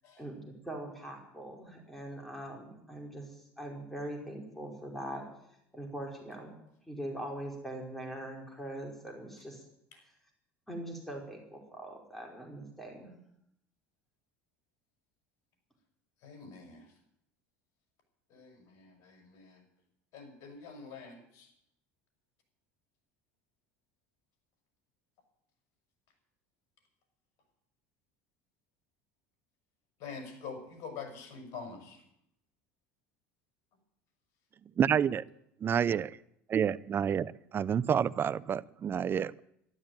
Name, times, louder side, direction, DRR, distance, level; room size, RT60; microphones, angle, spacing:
voice 1, 0.2-5.2 5.7-6.6 6.9-9.6 10.7-13.1, right 1 dB, 5° left, 0 dB, 4.8 m, -42 dB
voice 2, 16.2-16.9 18.3-19.6 20.1-21.5 30.0-32.0, left 5 dB, 60° left, 4 dB, 5.8 m, -46 dB
voice 3, 34.8-35.2 35.6-36.1 36.5-39.4, right 8 dB, 35° right, 18 dB, 0.6 m, -29 dB
12.5 x 12.5 x 9.0 m, 0.76 s
supercardioid pair, 100°, 6 cm